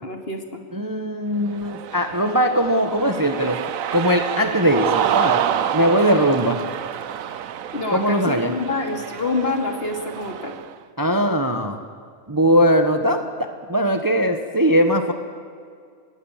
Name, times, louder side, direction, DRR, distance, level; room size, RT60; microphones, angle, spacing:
voice 1, 0.0-0.6 7.7-10.5, left 3 dB, 40° left, 4 dB, 2.9 m, -27 dB
voice 2, 0.7-3.6 3.9-5.4 5.7-6.6 7.9-8.5 11.0-11.8 12.3-15.1, equal, 15° right, 6 dB, 1.2 m, -20 dB
Cheering, 1.5-10.7, right 9 dB, 70° right, 1.2 m, -28 dB
25.5 x 20.5 x 7.4 m, 2.2 s
omnidirectional pair, 1.5 m